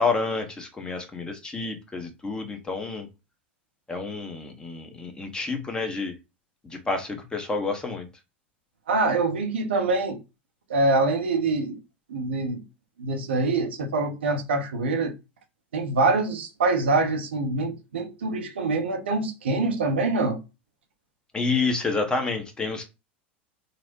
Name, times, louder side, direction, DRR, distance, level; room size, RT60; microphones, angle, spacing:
voice 1, 0.0-3.1 3.9-6.1 6.6-8.1 21.3-22.8, left 4 dB, 15° left, 0.8 m, -29 dB
voice 2, 8.9-10.2 10.7-11.8 12.1-12.6 13.0-15.1 15.7-20.4, right 3 dB, 80° right, 0.7 m, -25 dB
4.0 x 2.1 x 2.6 m
hypercardioid pair, 85°, 6 cm